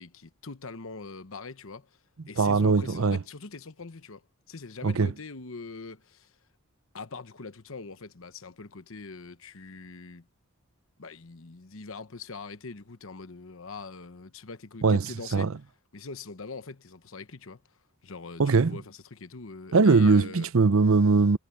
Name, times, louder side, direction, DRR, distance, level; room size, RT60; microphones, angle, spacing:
voice 1, 0.0-1.9 2.3-4.2 4.5-6.3 6.9-10.3 11.0-15.5 15.9-17.6 18.0-20.5, left 4 dB, 65° left, 1.1 m, -42 dB
voice 2, 2.4-3.2 4.8-5.1 14.8-15.5 18.4-18.8 19.7-21.4, right 4 dB, 70° right, 0.6 m, -21 dB
head